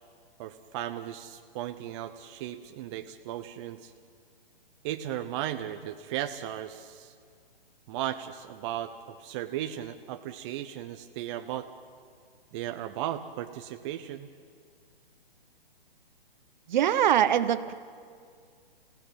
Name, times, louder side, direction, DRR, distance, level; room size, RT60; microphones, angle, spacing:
voice 1, 0.4-3.9 4.8-7.1 7.9-11.7 12.5-14.3, right 12 dB, 30° right, 6 dB, 0.9 m, -36 dB
voice 2, 16.7-17.7, right 10 dB, 50° right, 13 dB, 1.2 m, -23 dB
30.0 x 17.0 x 9.1 m, 2.2 s
hypercardioid pair, 135°, 30 cm